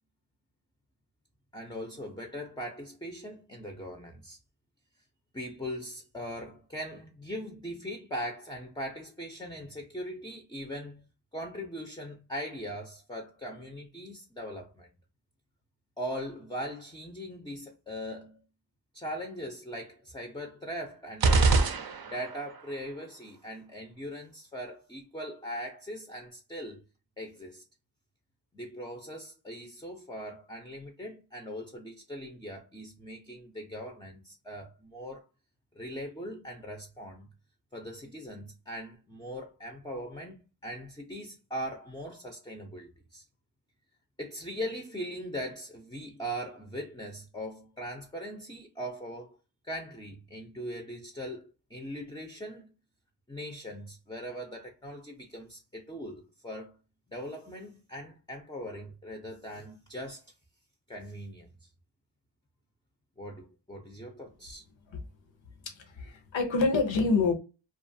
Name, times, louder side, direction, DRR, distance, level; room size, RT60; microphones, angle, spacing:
voice 1, 1.5-4.4 5.3-11.0 11.3-14.9 16.0-18.4 18.9-21.7 22.0-26.8 27.2-27.6 28.5-35.3 35.7-37.3 37.7-43.2 44.2-49.4 49.6-52.7 53.3-56.8 57.1-60.3 60.9-61.5 63.2-64.6, equal, 10° left, 0.4 m, -40 dB
sound 1, 21.2-22.5, right 3 dB, 55° right, 0.5 m, -24 dB
voice 2, 65.6-67.3, left 4 dB, 85° left, 0.7 m, -27 dB
2.4 x 2.3 x 2.6 m
wide cardioid pair, 65°, 45 cm